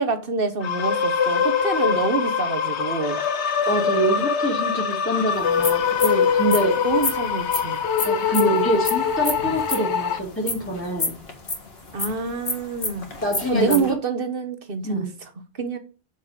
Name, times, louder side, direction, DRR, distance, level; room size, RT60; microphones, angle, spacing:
voice 1, 0.0-3.2 6.8-7.8 11.9-13.1 13.5-15.1 15.6-15.8, right 4 dB, 55° right, 1.4 m, -26 dB
sound 1, 0.6-10.2, left 6 dB, 80° left, 1.2 m, -23 dB
voice 2, 3.7-6.7 8.0-11.2 13.2-13.8 14.8-15.1, right 1 dB, 10° left, 2.3 m, -25 dB
sound 2, 5.4-13.9, left 3 dB, 65° left, 2.1 m, -30 dB
7.6 x 6.7 x 5.0 m
omnidirectional pair, 1.1 m